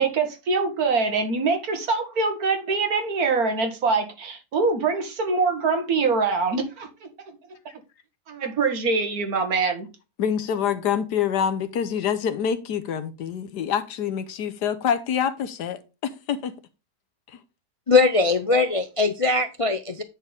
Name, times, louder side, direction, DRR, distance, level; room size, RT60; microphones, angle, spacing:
voice 1, 0.0-7.1 8.3-9.9, right 4 dB, 65° right, 2.1 m, -24 dB
voice 2, 10.2-16.5, left 8 dB, 85° left, 1.5 m, -26 dB
voice 3, 17.9-20.0, left 3 dB, 50° left, 0.4 m, -20 dB
9.6 x 4.4 x 5.2 m
omnidirectional pair, 1.7 m